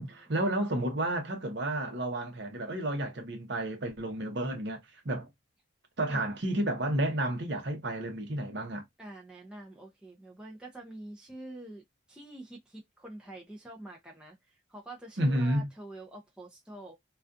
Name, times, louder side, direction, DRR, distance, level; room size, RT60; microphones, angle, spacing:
voice 1, 0.0-5.3 6.0-8.8 15.2-15.7, right 1 dB, 55° right, 0.8 m, -31 dB
voice 2, 9.0-11.8 12.1-14.4 14.7-16.9, right 1 dB, 5° right, 0.5 m, -46 dB
2.4 x 2.3 x 2.4 m
head